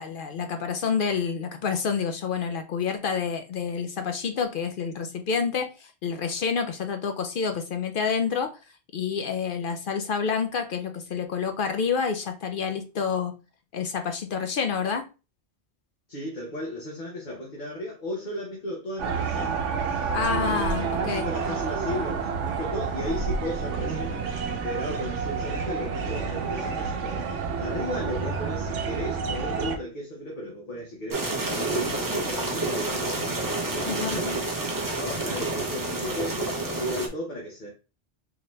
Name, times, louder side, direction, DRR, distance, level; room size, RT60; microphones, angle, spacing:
voice 1, 0.0-8.5 8.9-13.3 13.7-15.0 20.1-21.2 33.9-34.2, left 6 dB, 60° left, 0.6 m, -28 dB
voice 2, 16.1-19.6 20.4-27.2 27.6-33.4 33.7-34.5 35.0-37.7, left 1 dB, 45° left, 1.1 m, -35 dB
sound 1, 19.0-29.8, right 5 dB, 85° right, 1.0 m, -29 dB
sound 2, 31.1-37.1, right 2 dB, 25° right, 0.5 m, -29 dB
3.9 x 2.8 x 3.1 m
omnidirectional pair, 1.2 m